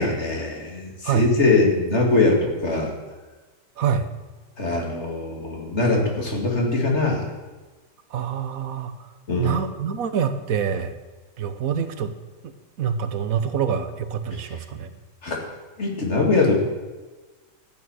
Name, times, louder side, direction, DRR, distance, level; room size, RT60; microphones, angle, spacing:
voice 1, 0.0-2.9 4.6-7.3 9.3-9.5 15.2-15.4 15.8-16.6, left 3 dB, 55° left, 0 dB, 2.6 m, -22 dB
voice 2, 8.1-9.1 9.4-10.9 11.4-12.1 12.8-14.9, right 7 dB, 85° right, 10 dB, 1.4 m, -26 dB
13.0 x 9.0 x 6.3 m, 1.2 s
omnidirectional pair, 1.4 m